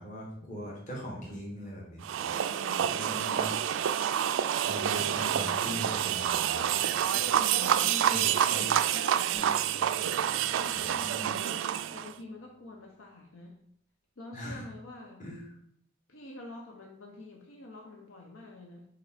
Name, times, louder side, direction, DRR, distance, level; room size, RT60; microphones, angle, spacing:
voice 1, 0.0-2.3 2.8-3.6 3.9-4.1 4.6-6.9 8.1-8.6 10.7-11.3 14.3-14.6 15.2-15.4, equal, 40° left, -3 dB, 1.6 m, -41 dB
sound 1, 2.0-12.1, right 10 dB, 70° right, 0.3 m, -28 dB
voice 2, 2.6-3.6 5.4-5.9 7.4-9.5 10.2-11.6 11.9-13.6 14.2-15.2 16.1-18.9, left 2 dB, 85° left, 0 dB, 0.9 m, -47 dB
sound 2, 4.7-10.0, left 1 dB, 55° left, 2.3 m, -57 dB
sound 3, 9.3-13.0, left 1 dB, 15° left, 2.0 m, -53 dB
5.1 x 4.7 x 4.4 m, 0.66 s
head